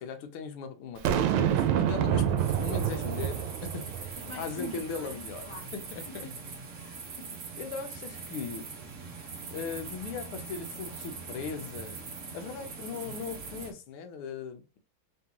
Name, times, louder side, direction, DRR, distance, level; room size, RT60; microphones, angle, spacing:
voice 1, 0.0-6.3 7.6-8.7 9.5-12.0 12.3-14.8, left 5 dB, 80° left, 1.6 m, -39 dB
Boom, 1.0-4.4, right 9 dB, 80° right, 1.4 m, -27 dB
sound 1, 2.4-13.7, right 4 dB, 55° right, 0.8 m, -42 dB
voice 2, 4.1-5.7 6.1-6.4 6.7-7.4, left 2 dB, 35° left, 0.4 m, -46 dB
3.8 x 3.5 x 2.8 m
omnidirectional pair, 2.4 m